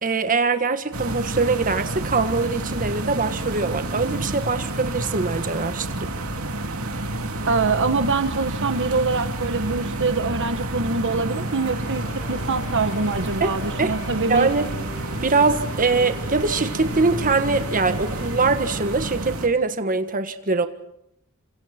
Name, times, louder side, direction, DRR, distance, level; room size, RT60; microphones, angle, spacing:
voice 1, 0.0-6.1 13.4-13.9 14.3-14.7 15.2-20.7, right 4 dB, 40° right, 9 dB, 1.6 m, -23 dB
sound 1, 0.9-19.5, right 1 dB, 75° right, 3.0 m, -29 dB
voice 2, 7.5-14.5, right 4 dB, 55° right, 9 dB, 1.3 m, -24 dB
sound 2, 11.5-18.8, left 3 dB, 35° left, 2.8 m, -42 dB
28.5 x 26.0 x 4.4 m, 0.79 s
head